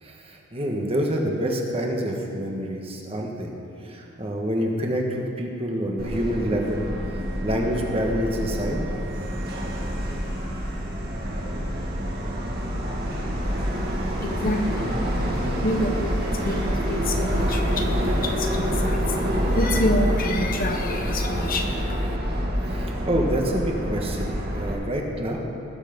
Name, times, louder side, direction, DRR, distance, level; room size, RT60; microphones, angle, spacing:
voice 1, 0.0-3.5 3.8-8.8 22.7-25.4, equal, 30° right, 0 dB, 1.4 m, -27 dB
Subway metro underground, 6.0-24.7, equal, 50° right, 2.0 m, -27 dB
voice 2, 14.2-22.2, left 1 dB, 45° left, 3 dB, 1.1 m, -28 dB
19.0 x 7.5 x 5.3 m, 2.6 s
head